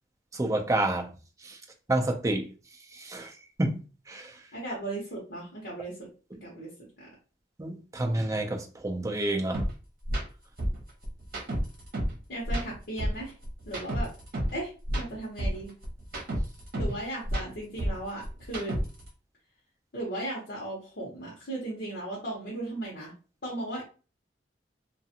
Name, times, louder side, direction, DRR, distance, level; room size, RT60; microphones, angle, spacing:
voice 1, 0.3-1.1 1.4-1.6 1.9-2.5 2.9-3.8 4.1-4.4 7.6-9.7, right 1 dB, 20° right, 0.4 m, -29 dB
voice 2, 4.5-6.1 6.4-7.1 12.3-13.3 13.7-14.1 14.5-14.7 15.0-15.7 16.7-18.8 19.9-23.1 23.4-23.8, right 1 dB, 65° left, 0.9 m, -36 dB
sound 1, 9.5-9.7 10.0-10.2 10.6-12.2 12.4-14.6 14.8-17.0 17.2-19.1, equal, 60° right, 0.9 m, -31 dB
2.5 x 2.4 x 2.7 m
head